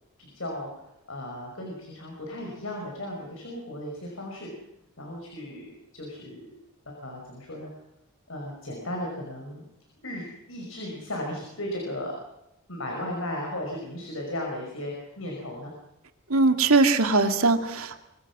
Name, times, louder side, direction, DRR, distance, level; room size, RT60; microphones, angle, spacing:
voice 1, 0.2-0.7 1.1-4.5 5.0-5.7 5.9-6.4 6.9-7.7 8.3-9.6 10.0-12.1 12.7-15.7, left 1 dB, 65° left, 0 dB, 5.6 m, -35 dB
voice 2, 16.3-18.0, right 3 dB, 80° right, 7 dB, 2.2 m, -21 dB
25.0 x 23.0 x 6.1 m, 0.86 s
head